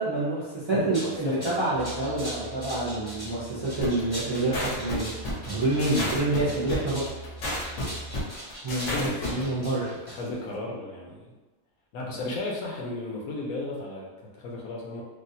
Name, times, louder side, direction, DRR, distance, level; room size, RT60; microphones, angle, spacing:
voice 1, 0.0-7.1 8.6-9.9, right 2 dB, 40° right, -9 dB, 0.4 m, -27 dB
voice 2, 0.7-1.6 6.0-6.2 8.8-9.7 10.1-11.3 11.9-15.0, left 2 dB, 80° left, -2 dB, 1.1 m, -35 dB
sound 1, 0.7-10.5, equal, 20° left, 0.8 m, -41 dB
Musical instrument, 1.7-8.5, right 3 dB, 15° right, 1.0 m, -44 dB
sound 2, 3.8-9.4, left 1 dB, 60° left, 1.0 m, -32 dB
3.4 x 2.4 x 2.7 m, 1.2 s
omnidirectional pair, 1.5 m